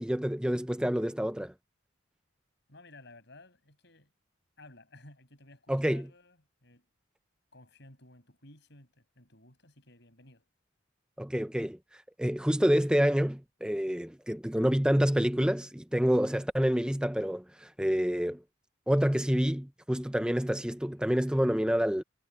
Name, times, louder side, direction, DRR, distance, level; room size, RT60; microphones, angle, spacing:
voice 1, 0.0-1.5 5.7-6.1 11.2-11.8 12.2-18.4 18.9-22.0, equal, 5° right, 0.6 m, -27 dB
voice 2, 2.7-4.1 4.6-6.9 7.5-10.5, left 2 dB, 55° left, 7.7 m, -55 dB
head